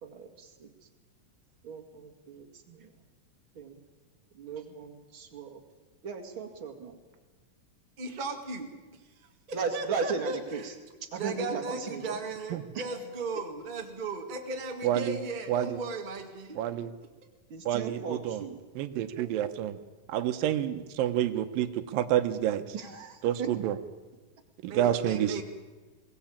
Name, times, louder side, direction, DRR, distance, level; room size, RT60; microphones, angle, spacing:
voice 1, 0.0-0.7 1.6-2.9 3.6-3.8 4.3-5.6 6.0-7.0 9.5-10.7 11.0-12.2 12.7-12.9 17.5-18.6 22.7-23.5, right 5 dB, 40° right, 4 dB, 2.6 m, -37 dB
voice 2, 8.0-10.7 11.2-16.6 24.6-25.4, right 3 dB, 20° right, 3 dB, 1.4 m, -37 dB
voice 3, 14.8-15.2 15.5-15.8 16.6-16.9 17.7-18.4 18.8-19.8 20.1-22.6 23.2-23.8 24.6-25.4, right 11 dB, 90° right, 11 dB, 2.7 m, -28 dB
22.0 x 18.0 x 8.7 m, 1.3 s
omnidirectional pair, 3.9 m